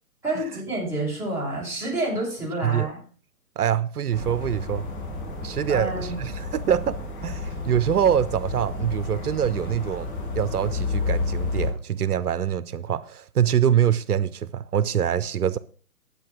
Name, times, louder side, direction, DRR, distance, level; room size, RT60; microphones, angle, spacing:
voice 1, 0.2-3.0 5.7-6.2, right 2 dB, 5° right, 6.8 m, -28 dB
voice 2, 3.6-4.9 5.4-15.6, right 9 dB, 80° right, 0.7 m, -24 dB
sound 1, 4.1-11.7, left 3 dB, 35° left, 5.6 m, -31 dB
11.0 x 8.3 x 6.2 m
hypercardioid pair, 140°, 45 cm